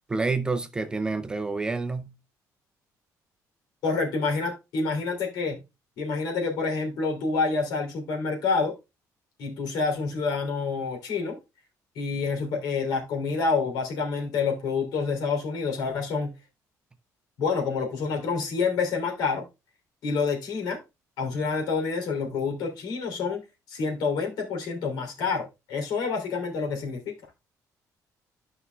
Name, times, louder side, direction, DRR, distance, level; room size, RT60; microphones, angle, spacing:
voice 1, 0.1-2.1, right 3 dB, 10° right, 0.5 m, -28 dB
voice 2, 3.8-5.6 6.0-8.7 9.4-11.4 11.9-16.3 17.4-19.4 20.0-20.8 21.2-23.4 23.7-27.1, left 4 dB, 80° left, 3.1 m, -28 dB
13.0 x 5.5 x 2.3 m
cardioid pair, 170°, 7 cm